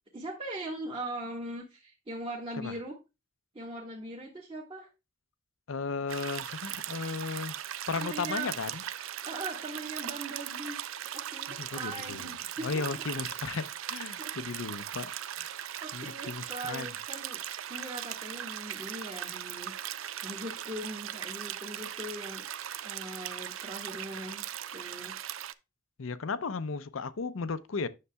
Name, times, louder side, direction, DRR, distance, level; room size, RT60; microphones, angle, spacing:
voice 1, 0.1-2.9 3.5-4.9 8.0-8.5 9.2-10.8 11.1-13.0 14.2-14.3 15.8-17.4 17.7-19.7 20.2-22.5 22.8-24.4 24.7-25.2, right 1 dB, 30° right, 1.5 m, -40 dB
voice 2, 5.7-7.6 7.9-8.8 11.5-12.4 12.6-15.5 15.9-16.9 26.0-27.9, left 4 dB, 90° left, 0.6 m, -35 dB
sound 1, 6.1-25.5, right 11 dB, 90° right, 0.5 m, -39 dB
9.6 x 6.6 x 2.2 m
head